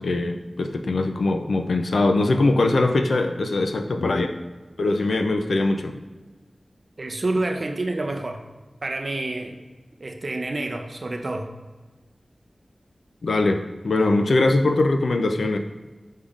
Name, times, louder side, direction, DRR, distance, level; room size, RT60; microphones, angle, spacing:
voice 1, 0.0-4.3 4.8-6.0 13.2-15.6, left 2 dB, 90° left, 6 dB, 0.3 m, -22 dB
voice 2, 7.0-8.4 8.8-9.6 10.0-11.5, right 2 dB, 55° right, 4 dB, 0.5 m, -28 dB
5.5 x 3.5 x 2.4 m, 1.3 s
wide cardioid pair, 75°, 0 cm